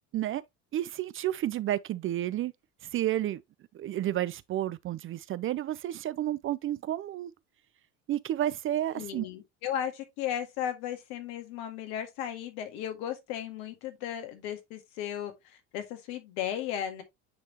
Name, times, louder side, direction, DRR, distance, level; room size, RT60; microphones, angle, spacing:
voice 1, 0.7-2.5 2.9-3.4 3.7-7.3 8.1-9.3, right 13 dB, 35° right, 0.4 m, -31 dB
voice 2, 8.9-17.0, left 10 dB, 70° left, 1.9 m, -35 dB
9.3 x 3.6 x 2.9 m
hypercardioid pair, 80°, 37 cm